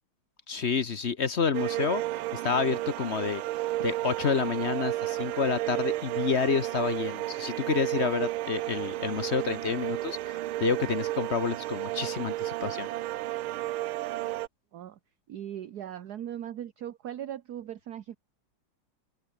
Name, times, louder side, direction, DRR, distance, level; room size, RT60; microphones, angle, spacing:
voice 1, 0.5-2.0 2.3-3.4 3.8-12.9, left 5 dB, 45° left, 1.0 m, -29 dB
sound 1, 1.5-14.5, right 16 dB, 90° right, 1.5 m, -32 dB
voice 2, 15.3-18.2, right 10 dB, 55° right, 1.4 m, -39 dB
omnidirectional pair, 2.2 m